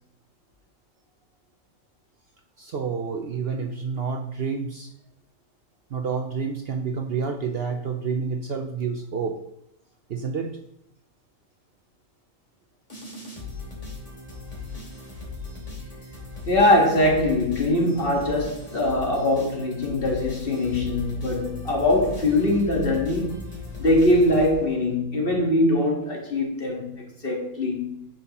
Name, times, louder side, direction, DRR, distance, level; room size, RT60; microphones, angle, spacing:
voice 1, 2.6-4.9 5.9-9.4 10.1-10.5, right 5 dB, 60° right, 0.7 m, -29 dB
sound 1, 12.9-25.0, left 3 dB, 25° left, 2.6 m, -38 dB
voice 2, 16.5-23.4 23.8-28.0, left 1 dB, 45° left, 1.6 m, -22 dB
10.0 x 5.4 x 2.9 m
omnidirectional pair, 1.4 m